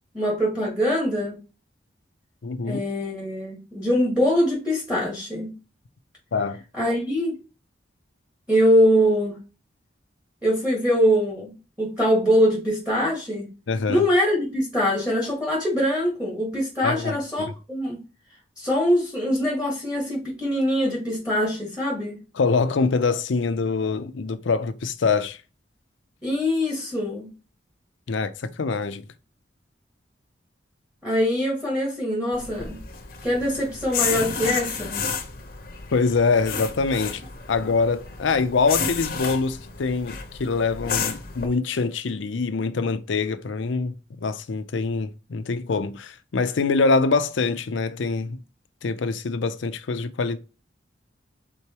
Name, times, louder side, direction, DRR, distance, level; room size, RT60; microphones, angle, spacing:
voice 1, 0.1-1.4 2.6-5.5 6.7-7.4 8.5-9.4 10.4-13.5 13.9-18.0 18.6-22.2 26.2-27.3 31.0-32.8 33.2-35.0, equal, 5° right, 1.5 m, -23 dB
voice 2, 2.4-2.8 6.3-6.6 13.7-14.0 16.8-17.5 22.4-25.4 28.1-29.0 35.9-37.2 37.5-48.4 48.8-50.4, left 4 dB, 80° left, 0.5 m, -24 dB
sound 1, 32.3-41.5, left 6 dB, 45° left, 0.7 m, -31 dB
4.7 x 3.8 x 2.9 m
head